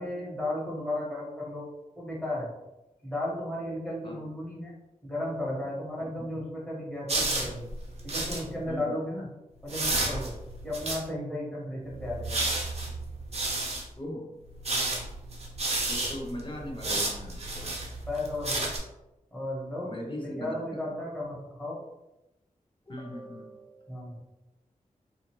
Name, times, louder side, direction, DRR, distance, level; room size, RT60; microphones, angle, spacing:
voice 1, 0.0-1.6 1.9-2.5 3.0-4.7 5.0-7.6 8.0-9.3 9.6-10.3 10.6-12.5 14.7-15.0 18.1-18.7 19.3-19.9 20.2-21.8 23.9-24.2, left 1 dB, 10° left, -6 dB, 1.4 m, -34 dB
sound 1, 7.1-8.5 9.7-11.0 11.9-13.8 14.5-18.8, right 2 dB, 50° right, 0.8 m, -31 dB
voice 2, 8.7-9.0 14.0-14.3 15.9-17.8 19.8-20.8 22.8-24.1, left 1 dB, 35° left, -1 dB, 0.7 m, -40 dB
2.6 x 2.4 x 2.9 m, 0.95 s
cardioid pair, 50°, 14 cm